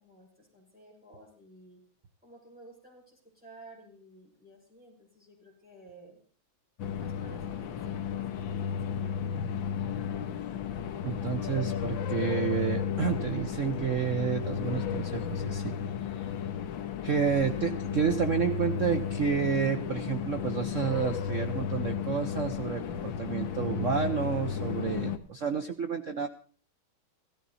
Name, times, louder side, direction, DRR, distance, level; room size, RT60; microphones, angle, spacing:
voice 1, 0.0-1.8 2.2-6.2 7.0-9.4, right 2 dB, 5° right, -3 dB, 6.0 m, -54 dB
sound 1, 6.8-25.2, left 8 dB, 70° left, 1.6 m, -33 dB
voice 2, 11.0-15.7 16.2-16.3 17.0-26.3, right 7 dB, 60° right, 7 dB, 0.8 m, -30 dB
16.5 x 14.0 x 4.1 m, 0.42 s
omnidirectional pair, 2.3 m